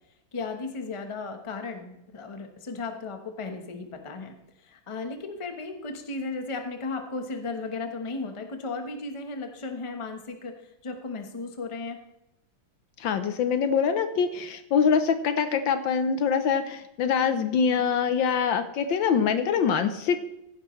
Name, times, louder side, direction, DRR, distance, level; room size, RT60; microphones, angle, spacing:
voice 1, 0.3-4.3 4.6-10.5 10.8-12.0, left 3 dB, 20° left, 5 dB, 0.9 m, -35 dB
voice 2, 13.0-20.2, left 6 dB, 70° left, 10 dB, 1.4 m, -24 dB
15.5 x 11.0 x 3.2 m, 0.87 s
omnidirectional pair, 2.3 m